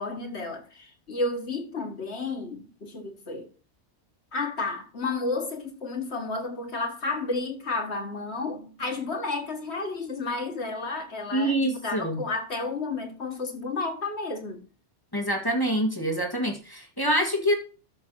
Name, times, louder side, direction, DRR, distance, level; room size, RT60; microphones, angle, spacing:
voice 1, 0.0-3.5 4.3-14.6, left 3 dB, 65° left, 2.0 m, -32 dB
voice 2, 11.3-12.2 15.1-17.5, equal, 20° left, 1.9 m, -26 dB
12.5 x 5.9 x 3.8 m
omnidirectional pair, 1.2 m